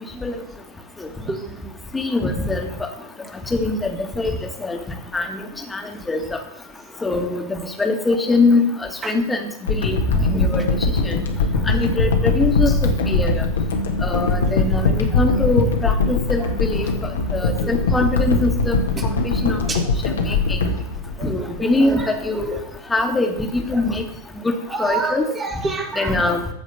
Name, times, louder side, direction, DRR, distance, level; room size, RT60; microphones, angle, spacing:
voice 1, 1.2-1.7 9.0-9.1 12.0-12.1 17.4-17.7 19.7-19.8 21.2-22.6 24.7-26.1, right 3 dB, 20° right, 3 dB, 2.0 m, -29 dB
voice 2, 1.9-2.9 3.5-4.3 4.6-4.8 5.1-5.4 5.7-5.8 6.1-6.4 7.0-10.0 10.3-10.6 11.0-11.2 11.6-13.4 14.0-16.9 17.3-18.8 19.2-19.6 20.2-20.6 21.2-22.5 22.9-24.0 24.4-24.5 24.8-25.2 26.0-26.5, left 2 dB, 10° left, 3 dB, 1.9 m, -22 dB
sound 1, 9.7-21.9 22.4-22.5, left 3 dB, 65° left, 1.7 m, -21 dB
14.5 x 5.0 x 7.0 m, 0.78 s
figure-of-eight pair, 90°, 0 cm